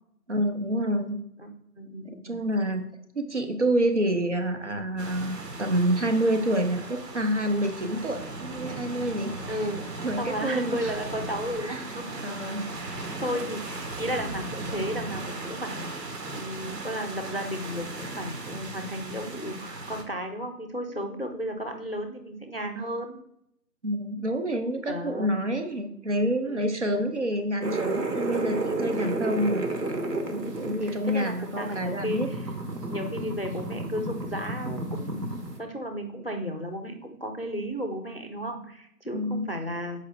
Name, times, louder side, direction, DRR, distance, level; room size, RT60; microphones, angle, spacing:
voice 1, 0.3-1.2 2.0-2.9 3.1-9.3 10.0-11.0 11.6-11.8 12.2-12.7 23.8-29.6 30.6-32.3 39.1-39.5, right 1 dB, 45° right, 6 dB, 0.7 m, -28 dB
voice 2, 1.8-2.4 9.5-9.8 10.2-12.3 12.8-23.2 24.9-25.3 26.5-27.0 28.8-29.4 30.2-32.4 32.9-35.1 35.6-40.0, equal, 40° left, 4 dB, 0.5 m, -34 dB
sound 1, 5.0-20.0, right 2 dB, 90° right, 1.5 m, -37 dB
sound 2, 27.6-35.6, right 2 dB, 75° right, 1.2 m, -32 dB
6.6 x 4.9 x 3.3 m, 0.75 s
figure-of-eight pair, 175°, 49 cm